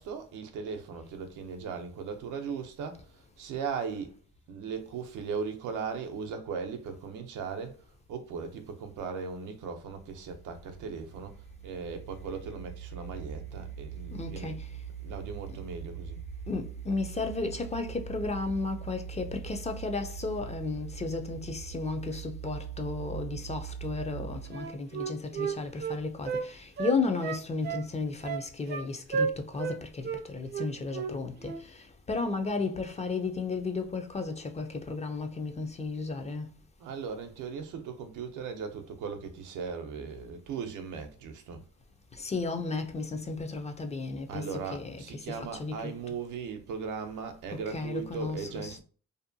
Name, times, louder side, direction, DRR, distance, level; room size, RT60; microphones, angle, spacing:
voice 1, 0.0-4.1 4.5-7.8 8.1-14.6 15.0-16.2 36.8-41.6 44.3-48.8, right 5 dB, 85° right, 0.6 m, -38 dB
sound 1, 9.8-24.7, right 8 dB, 55° left, 1.4 m, -42 dB
voice 2, 14.1-14.7 16.5-36.5 42.1-45.0 45.2-45.9 47.5-48.8, left 3 dB, 20° left, 0.4 m, -34 dB
Wind instrument woodwind instrument, 24.5-26.5 26.8-27.9 28.2-28.9 29.1-29.8 30.0-30.2 30.5-31.1 31.4-31.6, right 6 dB, 35° right, 0.4 m, -33 dB
2.6 x 2.1 x 2.6 m
cardioid pair, 90°, 30 cm